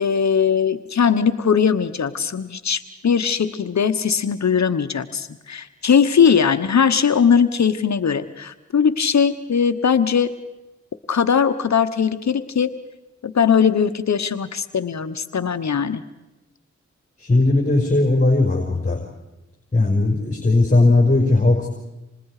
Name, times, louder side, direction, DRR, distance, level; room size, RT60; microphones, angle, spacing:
voice 1, 0.0-10.3 11.1-12.7 13.2-16.0, left 7 dB, 70° left, 10 dB, 1.1 m, -19 dB
voice 2, 17.2-19.0 19.7-21.7, left 2 dB, 25° left, 1 dB, 5.1 m, -17 dB
29.5 x 26.5 x 4.9 m, 1.0 s
cardioid pair, 50°, 29 cm